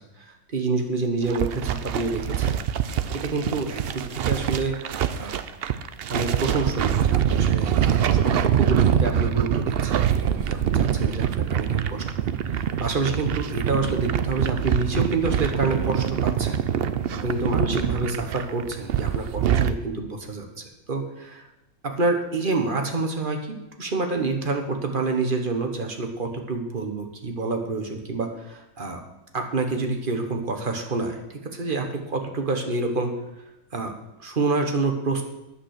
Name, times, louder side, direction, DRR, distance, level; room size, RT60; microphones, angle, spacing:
voice 1, 0.0-2.6 3.1-5.4 6.1-10.0 10.3-12.0 12.5-16.6 17.1-21.5 21.8-29.0 29.3-33.1 33.7-33.9 34.2-35.2, right 3 dB, 40° right, 3 dB, 1.4 m, -28 dB
sound 1, 1.2-19.7, right 9 dB, 60° right, 0.6 m, -24 dB
9.7 x 8.3 x 6.6 m, 0.94 s
omnidirectional pair, 1.5 m